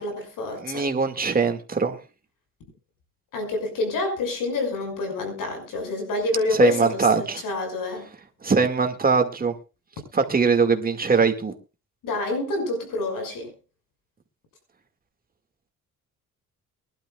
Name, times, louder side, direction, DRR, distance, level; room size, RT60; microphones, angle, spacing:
voice 1, 0.0-0.9 3.3-8.1 12.0-13.5, left 2 dB, 80° left, 6.1 m, -28 dB
voice 2, 0.6-2.0 6.6-7.4 8.4-9.5 10.1-11.5, right 5 dB, 25° right, 2.1 m, -21 dB
23.0 x 12.0 x 2.4 m
cardioid pair, 110°, 33 cm